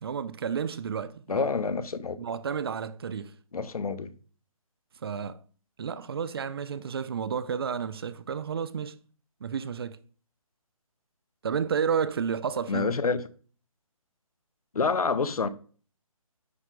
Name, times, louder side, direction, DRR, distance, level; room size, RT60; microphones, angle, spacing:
voice 1, 0.0-1.5 2.2-3.3 5.0-5.4 5.8-9.0 9.4-10.0 11.4-12.9, right 7 dB, 45° right, 0.6 m, -31 dB
voice 2, 1.3-2.2 3.5-4.1 12.7-13.2 14.7-15.5, left 4 dB, 80° left, 0.9 m, -27 dB
9.7 x 4.2 x 4.8 m
hypercardioid pair, 160°, 18 cm